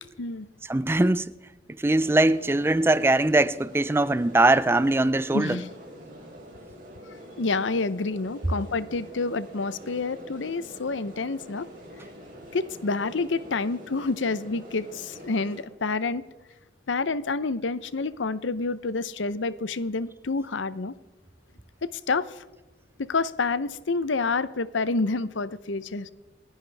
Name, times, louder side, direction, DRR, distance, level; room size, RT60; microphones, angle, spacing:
voice 1, 0.7-1.3 1.7-5.6, right 2 dB, 15° right, 0.4 m, -21 dB
sound 1, 2.0-15.6, equal, 45° right, 4.3 m, -45 dB
voice 2, 5.3-5.7 7.4-11.7 12.5-16.2 16.9-20.9 21.8-22.4 23.0-26.1, left 3 dB, 90° left, 0.7 m, -28 dB
29.0 x 10.5 x 3.4 m
head